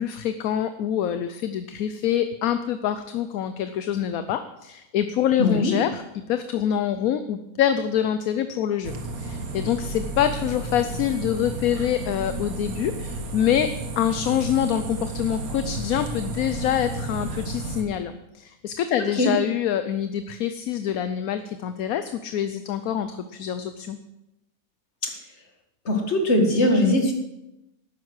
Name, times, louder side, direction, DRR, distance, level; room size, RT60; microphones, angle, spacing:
voice 1, 0.0-6.0 6.3-24.0, left 10 dB, 75° left, 10 dB, 1.1 m, -26 dB
voice 2, 5.4-5.7 19.0-19.3 25.0-25.1 25.9-27.1, left 1 dB, 50° left, 3 dB, 2.2 m, -21 dB
sound 1, 8.8-17.8, right 2 dB, 75° right, 1.6 m, -32 dB
12.0 x 9.5 x 6.2 m, 0.92 s
omnidirectional pair, 1.5 m